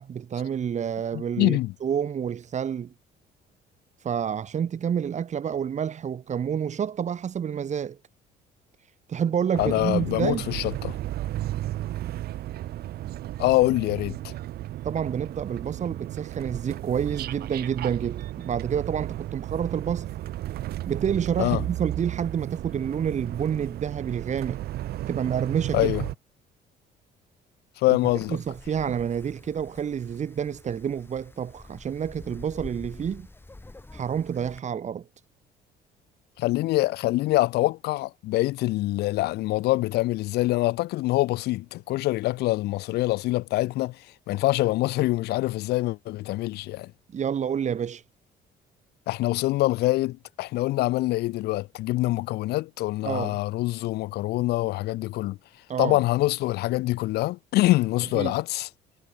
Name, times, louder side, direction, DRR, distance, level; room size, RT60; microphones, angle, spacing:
voice 1, 0.0-2.9 4.0-8.0 9.1-10.5 14.8-20.1 20.9-24.6 25.1-25.9 27.9-33.3 33.9-35.1 47.1-48.0 53.0-53.4 55.7-56.0 58.1-58.3, right 8 dB, 45° right, 3.9 m, -29 dB
voice 2, 1.1-1.7 9.6-11.0 13.4-14.3 21.4-21.6 25.7-26.0 27.8-28.4 36.4-44.0 44.3-46.9 49.1-55.4 55.8-58.7, left 18 dB, 75° left, 0.5 m, -25 dB
sound 1, 9.6-26.2, right 14 dB, 70° right, 1.5 m, -34 dB
Wind, 28.0-34.6, left 2 dB, 15° left, 5.4 m, -47 dB
cardioid pair, 110°, 17 cm